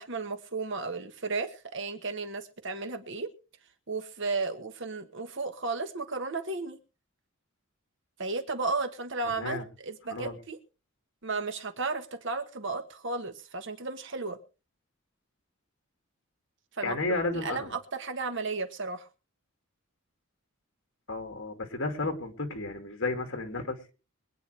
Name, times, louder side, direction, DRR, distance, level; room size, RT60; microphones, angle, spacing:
voice 1, 0.0-3.3 3.9-6.8 8.2-10.6 11.2-14.4 16.8-17.0 17.3-19.1, right 3 dB, 60° right, 7 dB, 1.3 m, -34 dB
voice 2, 16.8-17.7 21.1-23.9, left 2 dB, 60° left, 5 dB, 2.5 m, -32 dB
24.0 x 9.3 x 3.4 m, 0.33 s
head